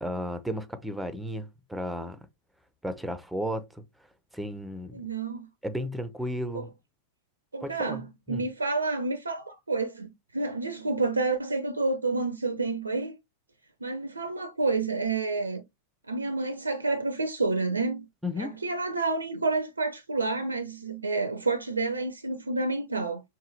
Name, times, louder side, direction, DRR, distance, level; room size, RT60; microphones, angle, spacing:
voice 1, 0.0-2.2 2.8-3.8 4.3-5.0 5.6-6.7 7.6-8.5 18.2-18.6, equal, ahead, 0.7 m, -34 dB
voice 2, 4.9-5.5 6.5-6.6 7.5-13.2 13.8-15.6 16.1-18.1 18.4-23.2, right 3 dB, 80° right, 0.5 m, -29 dB
4.7 x 3.1 x 3.2 m
figure-of-eight pair, 90°, 0 cm